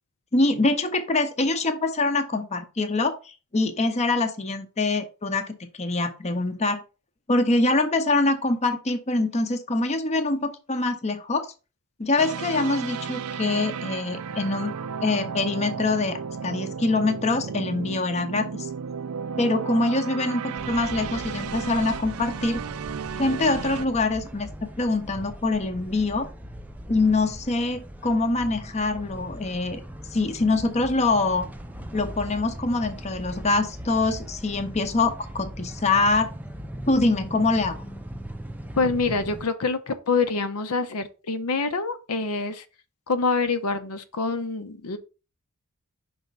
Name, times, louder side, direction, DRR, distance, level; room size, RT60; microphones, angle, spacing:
voice 1, 0.3-6.8 7.3-11.5 12.0-14.7 15.0-18.7 19.4-22.6 23.2-26.3 26.9-29.8 30.1-31.5 31.9-36.3 36.9-37.8, left 2 dB, 30° left, 0.7 m, -24 dB
sound 1, 12.2-23.9, right 6 dB, 70° right, 0.4 m, -34 dB
sound 2, 20.6-39.5, equal, 5° right, 0.5 m, -39 dB
voice 2, 38.8-42.6 43.1-45.0, left 4 dB, 80° left, 0.7 m, -26 dB
5.5 x 3.5 x 5.2 m
head